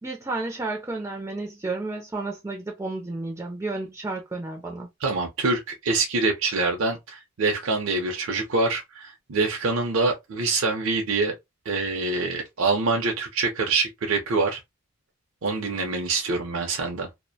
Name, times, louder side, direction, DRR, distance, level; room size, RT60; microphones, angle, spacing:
voice 1, 0.0-4.9, right 3 dB, 15° right, 0.4 m, -32 dB
voice 2, 5.0-11.3 11.7-14.6 15.4-17.1, right 3 dB, 65° right, 0.5 m, -25 dB
2.4 x 2.0 x 2.6 m
head